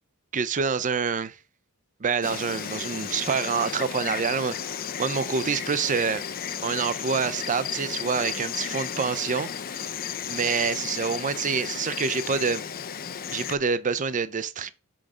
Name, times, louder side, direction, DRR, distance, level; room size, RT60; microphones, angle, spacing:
voice 1, 0.3-1.4 2.0-4.6 5.0-6.2 6.6-9.8 10.3-12.6 13.3-14.7, right 5 dB, 35° right, 0.5 m, -27 dB
Insect, 2.2-13.6, left 8 dB, 40° left, 0.5 m, -34 dB
6.2 x 4.9 x 4.9 m
head